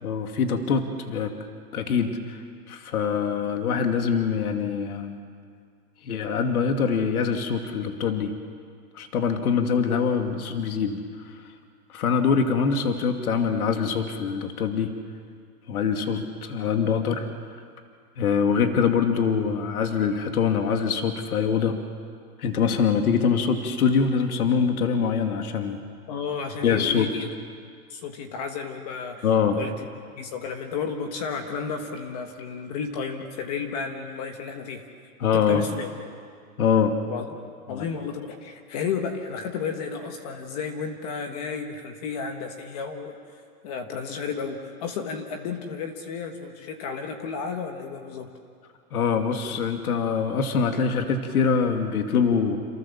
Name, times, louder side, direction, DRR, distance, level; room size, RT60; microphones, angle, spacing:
voice 1, 0.0-1.4 1.7-5.2 6.0-8.3 8.9-11.4 11.9-15.0 15.7-17.3 18.2-21.8 22.4-25.8 26.6-27.1 29.2-29.6 35.2-35.7 36.6-37.0 37.7-37.9 48.9-52.6, left 6 dB, 65° left, 5 dB, 2.5 m, -24 dB
voice 2, 26.1-27.3 27.9-29.3 29.6-29.7 30.2-34.8 35.3-35.9 37.1-37.2 37.7-43.2 43.6-48.3, left 6 dB, 25° left, 5 dB, 1.4 m, -32 dB
29.0 x 28.0 x 7.2 m, 2.2 s
hypercardioid pair, 175°, 46 cm